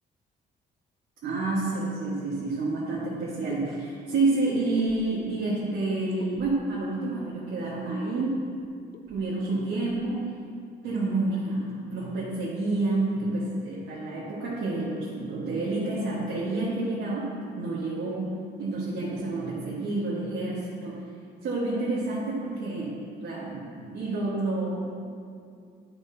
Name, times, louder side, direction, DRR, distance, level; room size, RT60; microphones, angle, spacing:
voice 1, 1.2-8.4 9.1-10.3 10.8-21.0 21.4-22.9 23.2-24.9, right 2 dB, 75° right, -9 dB, 1.5 m, -29 dB
sound 1, 3.0-3.2 3.5-3.6 4.8-5.4 6.2-6.7 8.2-8.3 8.6-8.7 8.9-9.3 9.7-10.0, left 6 dB, 50° left, 0.5 m, -45 dB
9.9 x 5.7 x 2.8 m, 2.3 s
cardioid pair, 90°, 20 cm